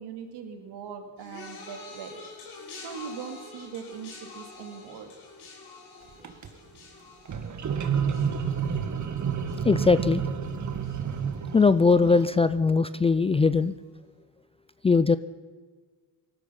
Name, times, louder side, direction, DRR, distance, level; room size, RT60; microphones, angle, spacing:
voice 1, 0.0-2.2 2.8-5.1, right 7 dB, 65° right, 6 dB, 2.7 m, -40 dB
sound 1, 1.2-10.5 10.8-11.4 12.2-12.3, left 3 dB, 65° left, 5.2 m, -47 dB
sound 2, 6.1-6.5 7.2-12.2, right 7 dB, 40° right, 1.9 m, -30 dB
voice 2, 9.6-10.2 11.5-13.7 14.8-15.2, left 4 dB, 15° left, 15 dB, 0.4 m, -20 dB
18.5 x 13.0 x 5.8 m, 1.5 s
supercardioid pair, 70°, 43 cm